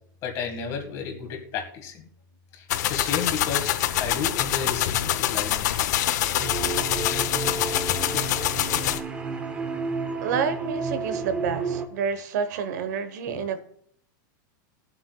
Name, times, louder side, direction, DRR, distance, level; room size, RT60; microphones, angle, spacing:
voice 1, 0.2-2.1 2.5-5.8 8.1-8.2, left 6 dB, 30° left, 1.7 m, -32 dB
sound 1, 2.7-9.0, left 12 dB, 55° left, 0.7 m, -25 dB
sound 2, 6.4-11.9, right 4 dB, 10° right, 0.6 m, -31 dB
voice 2, 10.2-13.6, right 6 dB, 60° right, 1.1 m, -29 dB
21.0 x 7.9 x 2.3 m
supercardioid pair, 175°, 11 cm